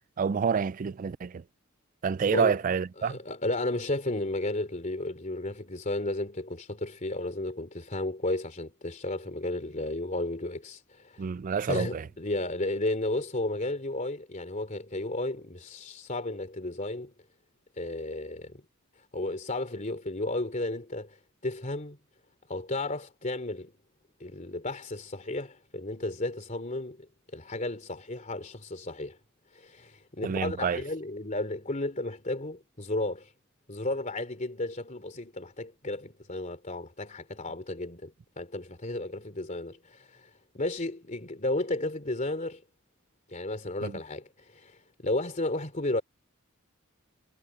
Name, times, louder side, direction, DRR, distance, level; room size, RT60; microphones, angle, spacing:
voice 1, 0.2-1.4 2.0-3.2 11.2-12.0 30.2-30.8 43.8-43.9, right 6 dB, 40° right, 0.3 m, -28 dB
voice 2, 3.0-11.3 11.7-17.1 17.8-18.6 19.1-22.0 22.5-23.7 24.2-27.1 27.3-29.2 29.5-33.3 33.7-42.6 43.3-46.0, left 2 dB, 35° left, 3.2 m, -33 dB
head